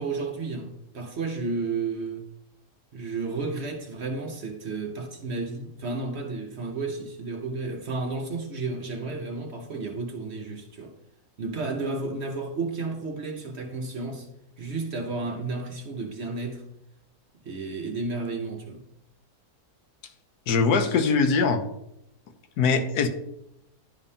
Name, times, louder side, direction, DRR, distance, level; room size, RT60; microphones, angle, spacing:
voice 1, 0.0-2.2 2.9-10.9 11.4-14.3 14.6-16.6 17.4-18.8, right 3 dB, 50° right, 1.0 m, -32 dB
voice 2, 20.5-21.6 22.6-23.1, left 5 dB, 80° left, 1.3 m, -22 dB
11.0 x 5.2 x 2.7 m
omnidirectional pair, 1.7 m